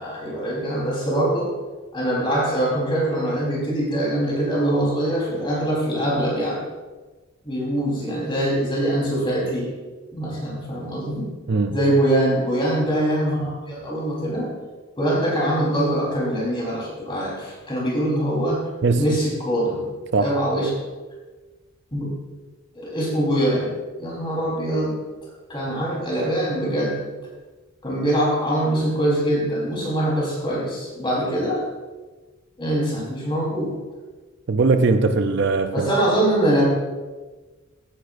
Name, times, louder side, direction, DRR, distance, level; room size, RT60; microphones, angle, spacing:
voice 1, 0.0-1.5 1.9-6.6 7.4-9.7 10.1-11.3 11.7-14.5 15.0-18.6 19.0-19.8 20.2-20.7 21.9-22.1 22.7-24.9 25.5-27.0 27.8-31.6 32.6-33.7 35.7-36.6, right 1 dB, 25° left, -5 dB, 3.8 m, -23 dB
voice 2, 11.5-11.8 18.8-19.2 20.1-20.4 34.5-35.9, right 3 dB, 55° right, 8 dB, 0.5 m, -20 dB
15.0 x 9.8 x 2.6 m, 1.3 s
head